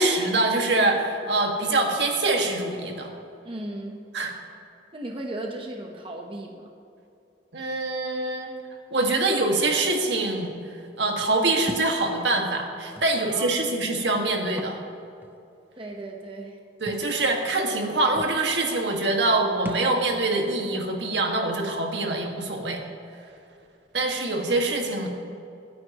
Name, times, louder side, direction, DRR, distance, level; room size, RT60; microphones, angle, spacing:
voice 1, 0.0-3.1 4.1-4.3 7.5-8.5 8.9-10.5 11.0-14.8 16.8-22.8 23.9-25.1, right 2 dB, 75° right, 1 dB, 1.8 m, -24 dB
voice 2, 3.4-4.1 4.9-6.7 13.2-13.6 15.8-16.6, right 1 dB, 30° right, 1 dB, 1.1 m, -36 dB
Thump thud, 11.7-11.9 13.0-13.1 14.4-14.8 15.2-15.3 16.9-17.1 17.8-17.9 18.2-18.4 19.6-19.9, right 1 dB, 10° right, 0.6 m, -36 dB
26.0 x 9.4 x 3.0 m, 2.7 s
head